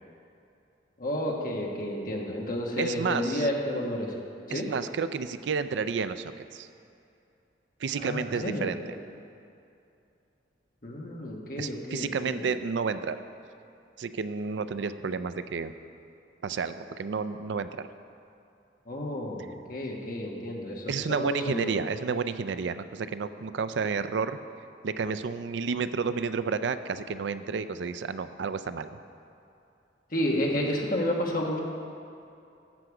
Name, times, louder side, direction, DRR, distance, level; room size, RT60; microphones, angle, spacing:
voice 1, 1.0-4.1 4.5-4.6 8.0-8.7 10.8-12.4 18.9-21.7 30.1-31.6, left 1 dB, 50° left, -1 dB, 1.4 m, -31 dB
voice 2, 2.8-3.5 4.5-6.7 7.8-9.0 11.6-13.2 14.0-15.7 16.4-17.9 20.9-24.4 24.8-28.9, right 5 dB, 75° right, 12 dB, 0.4 m, -31 dB
12.0 x 8.0 x 4.8 m, 2.7 s
head